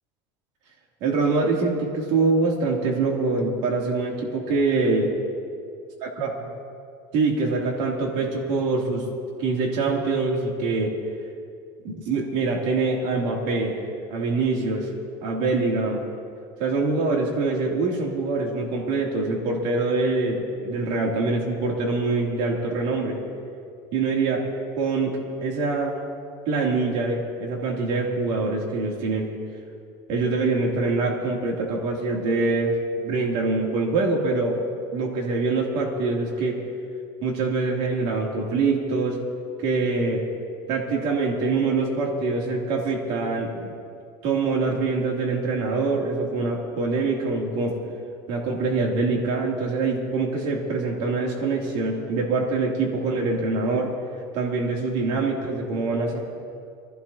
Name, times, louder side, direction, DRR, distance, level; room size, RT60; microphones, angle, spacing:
voice 1, 1.0-5.2 6.0-6.3 7.1-9.1 9.4-10.9 11.8-13.8 14.1-14.9 15.2-16.0 16.6-23.2 23.9-24.4 24.7-26.0 26.5-29.3 30.1-36.6 37.2-39.2 39.6-40.2 40.7-43.7 44.2-47.8 48.3-53.9 54.3-56.2, right 3 dB, 65° right, -1 dB, 3.0 m, -24 dB
24.5 x 16.0 x 2.9 m, 2.3 s
cardioid pair, 160°, 11 cm